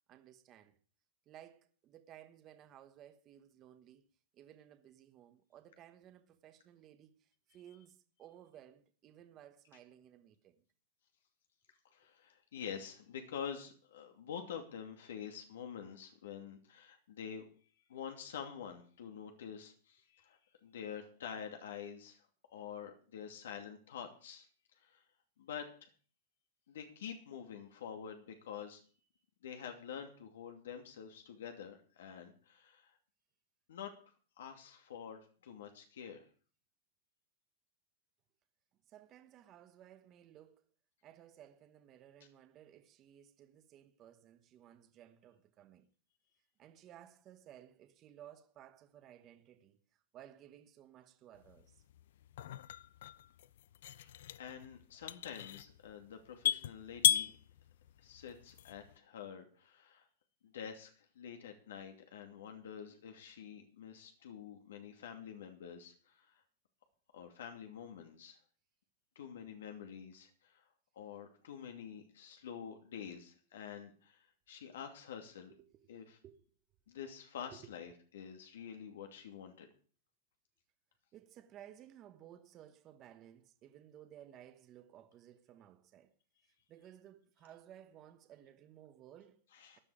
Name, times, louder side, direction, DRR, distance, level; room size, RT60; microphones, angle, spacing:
voice 1, 0.1-0.8 1.3-4.1 4.3-10.6 38.9-40.7 41.0-45.9 46.6-49.8 50.1-51.8 75.5-75.9 76.2-76.4 77.5-77.7 81.1-86.1 86.4-89.4 89.7-89.8, right 11 dB, 25° right, 1.1 m, -58 dB
voice 2, 11.9-17.4 17.9-22.2 22.5-24.5 24.8-25.0 25.4-25.9 26.7-28.8 29.4-33.0 33.7-33.9 34.4-36.2 54.0-57.3 58.0-60.1 60.4-66.4 67.1-68.4 69.1-70.6 70.9-75.5 75.9-76.2 76.9-79.7 89.5-89.8, left 8 dB, 85° left, 2.6 m, -47 dB
sound 1, 51.4-59.0, left 11 dB, 65° left, 0.6 m, -36 dB
15.5 x 10.5 x 5.0 m
supercardioid pair, 170°, 0 cm